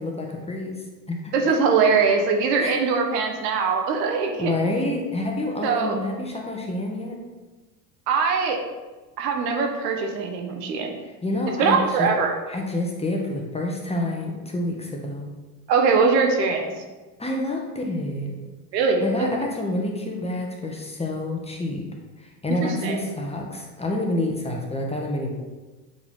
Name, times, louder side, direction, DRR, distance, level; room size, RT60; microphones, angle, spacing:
voice 1, 0.0-1.3 2.6-2.8 4.4-7.2 11.2-12.1 12.5-15.3 17.2-18.3 18.7-21.8 22.2-25.3, left 1 dB, 10° left, 0 dB, 1.5 m, -28 dB
voice 2, 1.3-4.5 5.6-6.0 8.1-8.6 9.2-10.9 11.6-12.3 15.7-16.7 18.7-19.3 22.6-23.0, right 5 dB, 75° right, 3 dB, 1.2 m, -22 dB
7.9 x 4.9 x 3.6 m, 1.2 s
hypercardioid pair, 75°, 50 cm